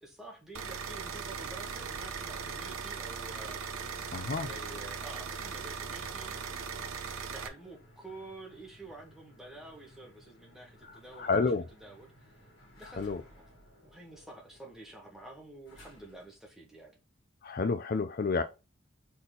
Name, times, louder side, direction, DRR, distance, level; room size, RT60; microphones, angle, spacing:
voice 1, 0.0-3.9 4.4-6.7 7.1-11.5 11.8-12.3 12.7-13.5 13.8-17.0, right 2 dB, ahead, 1.5 m, -49 dB
sound 1, 0.5-7.5, right 6 dB, 90° right, 0.8 m, -39 dB
sound 2, 1.2-16.4, equal, 65° left, 2.3 m, -58 dB
voice 2, 4.1-4.5 10.9-11.6 13.0-13.2 17.4-18.4, left 4 dB, 45° left, 0.4 m, -30 dB
4.3 x 4.2 x 5.3 m
head